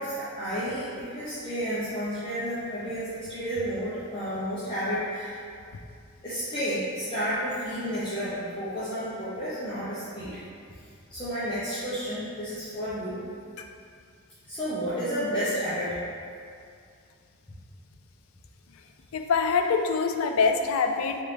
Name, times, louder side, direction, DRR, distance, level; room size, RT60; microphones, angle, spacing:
voice 1, 0.0-5.4 6.2-10.4 11.1-13.2 14.5-15.9, equal, 25° left, -13 dB, 0.8 m, -31 dB
voice 2, 19.1-21.2, left 5 dB, 80° left, 5 dB, 0.4 m, -24 dB
3.9 x 3.5 x 3.3 m, 2.3 s
head